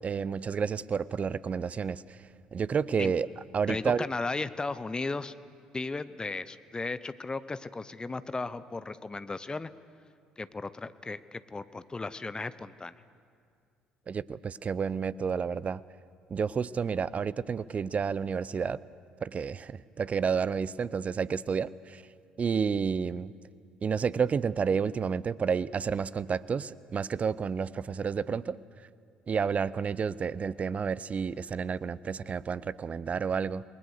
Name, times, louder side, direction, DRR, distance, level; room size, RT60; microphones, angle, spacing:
voice 1, 0.0-3.3 3.5-4.1 14.1-15.8 16.3-18.8 19.2-22.0 22.4-23.3 23.8-28.6 29.3-33.6, right 6 dB, 35° right, 19 dB, 0.6 m, -30 dB
voice 2, 3.7-5.3 5.7-9.7 10.4-12.9, left 3 dB, 20° left, 14 dB, 0.9 m, -35 dB
28.0 x 20.5 x 6.6 m, 2.2 s
figure-of-eight pair, 55°, 4 cm